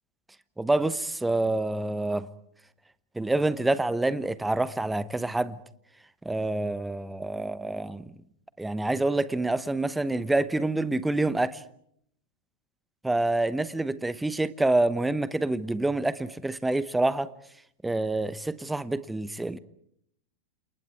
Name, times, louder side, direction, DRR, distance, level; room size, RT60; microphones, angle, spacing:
voice 1, 0.6-2.3 3.1-5.6 6.2-8.1 8.6-11.6 13.0-17.3 17.8-19.6, right 2 dB, 5° right, 1.0 m, -27 dB
29.5 x 29.0 x 4.7 m
figure-of-eight pair, 90°, 0 cm